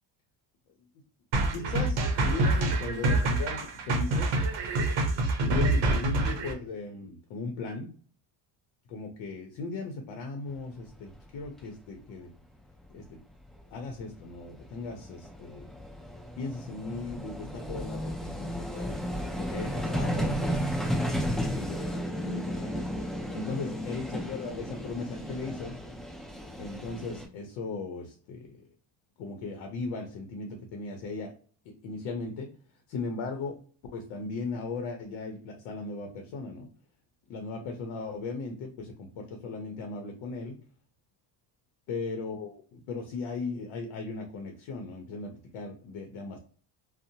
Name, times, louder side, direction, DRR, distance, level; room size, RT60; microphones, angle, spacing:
sound 1, 1.3-6.5, right 2 dB, 65° right, 0.7 m, -26 dB
voice 1, 1.5-4.4 5.4-7.9 8.9-12.3 12.9-13.2 13.7-15.7 16.4-18.9 19.4-23.0 23.3-25.8 26.5-28.6 29.2-31.3 31.7-32.5 32.9-33.6 33.9-36.7 37.3-40.6 41.9-46.4, left 3 dB, 75° left, 4 dB, 0.7 m, -37 dB
Vehicle, 11.1-11.2 11.4-11.6 13.6-13.7 13.9-27.2, equal, ahead, 0.5 m, -34 dB
2.7 x 2.0 x 2.7 m, 0.42 s
cardioid pair, 130°, 46 cm